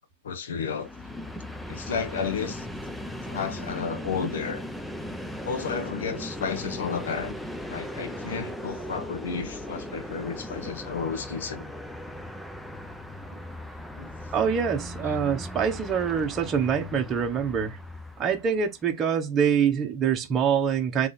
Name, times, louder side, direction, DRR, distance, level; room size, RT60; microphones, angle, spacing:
voice 1, 0.2-0.9 1.7-2.7 3.2-4.6 5.4-7.3 7.7-11.7 13.3-13.4 14.0-14.1, left 6 dB, 80° left, 0.9 m, -32 dB
Train, 0.7-18.8, left 1 dB, 5° left, 0.6 m, -38 dB
voice 2, 14.3-17.8 18.2-21.1, right 7 dB, 25° right, 1.1 m, -25 dB
3.7 x 3.0 x 4.0 m
hypercardioid pair, 135°, 0 cm